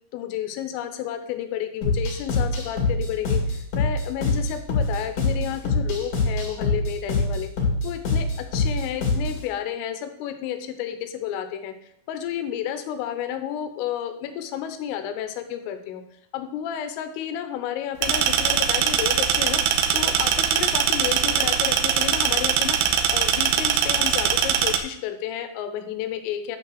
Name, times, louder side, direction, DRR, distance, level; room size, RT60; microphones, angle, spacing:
voice 1, 0.1-7.5 7.8-11.7 12.1-16.0 16.3-19.6 19.9-22.8 23.1-26.6, left 10 dB, 90° left, 8 dB, 3.5 m, -31 dB
sound 1, 1.8-9.4, left 3 dB, 45° left, 3.1 m, -24 dB
sound 2, 18.0-24.8, right 8 dB, 85° right, 2.3 m, -22 dB
10.0 x 5.7 x 6.4 m, 0.77 s
omnidirectional pair, 5.8 m